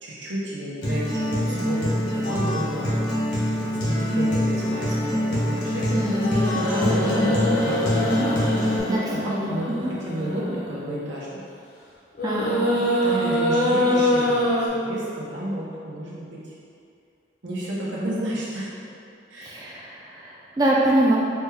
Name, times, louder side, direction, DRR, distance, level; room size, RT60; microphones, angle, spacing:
voice 1, 0.0-2.9 3.3-5.9 6.7-8.4 8.8-9.2 9.5-11.5 12.7-14.5 14.9-16.4 17.4-18.7 19.3-19.6, right 1 dB, 85° right, -6 dB, 0.9 m, -31 dB
Acoustic guitar, 0.8-8.8, equal, 70° left, 1.2 m, -25 dB
voice 2, 5.9-6.3 6.5-7.3 8.1-8.3 8.9-9.5 9.8-9.9 12.2-12.6 19.4-21.2, right 1 dB, 20° right, -4 dB, 0.3 m, -24 dB
sound 1, 6.1-10.9 12.1-14.7, left 1 dB, 50° left, 0.7 m, -24 dB
4.3 x 2.3 x 3.3 m, 2.5 s
head